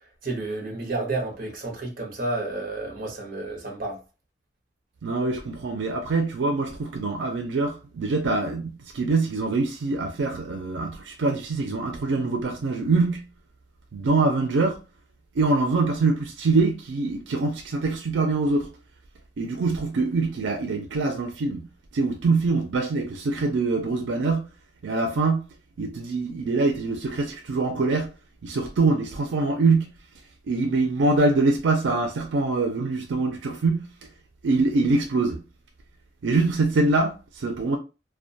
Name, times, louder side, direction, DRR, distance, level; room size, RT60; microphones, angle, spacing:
voice 1, 0.2-4.0, right 2 dB, 50° right, 0.7 m, -31 dB
voice 2, 5.0-13.2 13.9-14.8 15.3-18.7 19.4-21.6 21.9-24.5 24.8-25.5 25.8-28.1 28.4-29.9 30.5-34.1 34.4-35.4 36.2-37.8, right 3 dB, 90° right, 0.4 m, -24 dB
2.2 x 2.2 x 2.6 m
head